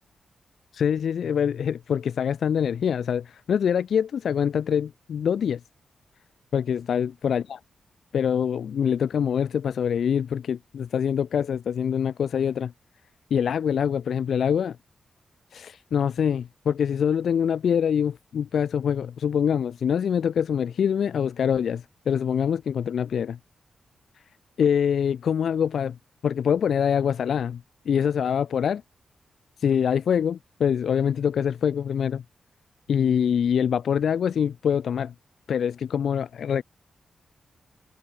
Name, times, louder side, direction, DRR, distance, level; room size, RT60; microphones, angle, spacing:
voice 1, 0.7-5.6 6.5-7.6 8.1-12.7 13.3-14.8 15.5-23.3 24.6-26.0 26.2-28.8 29.6-32.2 32.9-35.1 35.5-36.6, left 8 dB, 75° left, 5.0 m, -24 dB
wide cardioid pair, 125°, 0 cm